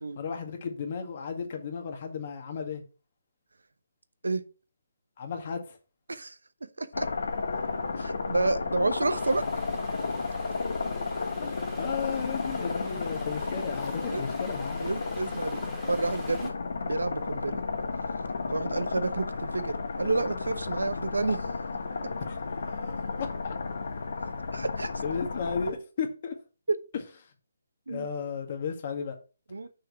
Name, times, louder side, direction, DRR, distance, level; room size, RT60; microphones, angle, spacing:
voice 1, 0.2-2.8 5.2-5.8 8.0-8.1 11.4-14.9 22.3-23.5 25.0-26.4 27.9-29.2, left 6 dB, 45° left, 1.8 m, -35 dB
voice 2, 6.8-7.1 8.0-9.5 14.1-14.2 14.8-15.6 15.9-16.5 16.9-17.6 18.5-21.5 24.5-24.9 26.7-26.8 27.9-28.1 29.5-29.7, right 3 dB, 80° right, 0.8 m, -30 dB
sound 1, 6.9-25.7, left 4 dB, 65° left, 1.4 m, -33 dB
Stream, 9.1-16.5, right 1 dB, 5° right, 1.9 m, -48 dB
6.3 x 4.7 x 5.8 m
figure-of-eight pair, 145°, 0 cm